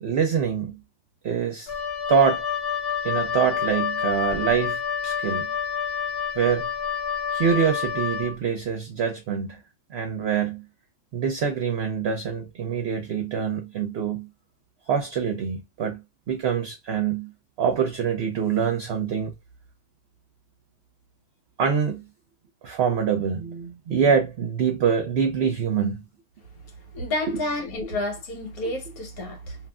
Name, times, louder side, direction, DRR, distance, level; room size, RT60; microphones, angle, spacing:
voice 1, 0.0-0.8 1.2-1.7 2.1-2.5 3.0-5.5 6.3-6.7 7.3-9.6 9.9-10.6 11.1-14.3 14.9-17.3 17.6-19.3 21.6-22.0 22.6-26.0 27.3-27.4 27.8-28.0, right 7 dB, 60° right, 0.7 m, -25 dB
Wind instrument woodwind instrument, 1.7-8.4, left 7 dB, 55° left, 0.7 m, -28 dB
voice 2, 26.9-29.6, left 1 dB, 90° left, 1.6 m, -30 dB
2.9 x 2.5 x 2.2 m
omnidirectional pair, 1.5 m